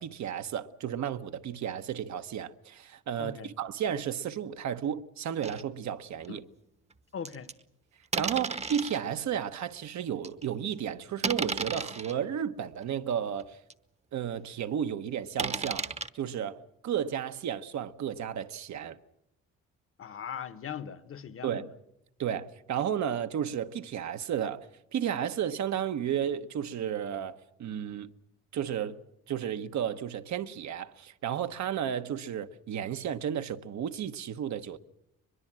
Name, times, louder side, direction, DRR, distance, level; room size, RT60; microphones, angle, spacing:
voice 1, 0.0-6.4 8.1-13.6 14.1-15.9 16.1-19.0 21.4-21.7 22.2-24.7 24.9-28.1 28.5-29.0 29.3-34.8, right 9 dB, 65° right, 1.1 m, -33 dB
voice 2, 3.2-3.5 6.3-6.4 7.1-7.5 20.0-21.6, left 8 dB, 45° left, 1.2 m, -39 dB
sound 1, 5.4-5.6 6.2-6.3 7.3-7.5 8.1-9.0 9.6-9.7 10.2-10.4 11.2-12.1 12.8-12.9 13.4-13.5 13.7-13.8 15.4-16.1, right 4 dB, 20° right, 1.0 m, -33 dB
22.5 x 22.0 x 7.5 m
cardioid pair, 90°, 30 cm